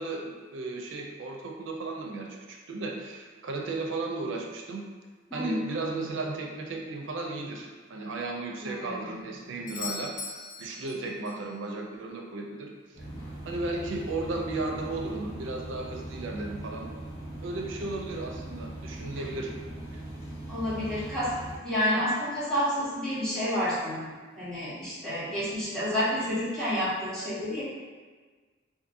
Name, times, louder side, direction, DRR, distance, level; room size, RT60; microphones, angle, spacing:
voice 1, 0.0-4.8 5.3-10.3 10.6-12.7 13.0-13.1 13.5-16.9 17.4-19.5, right 2 dB, 80° right, 1 dB, 0.4 m, -35 dB
voice 2, 8.6-9.1 20.5-21.3 21.6-24.1 24.4-27.6, equal, 5° left, -13 dB, 1.1 m, -29 dB
Doorbell, 9.7-11.5 15.6-15.7, left 4 dB, 40° left, 0.4 m, -40 dB
sound 1, 12.9-21.5, right 1 dB, 60° left, 1.3 m, -40 dB
2.7 x 2.5 x 2.5 m, 1.4 s
head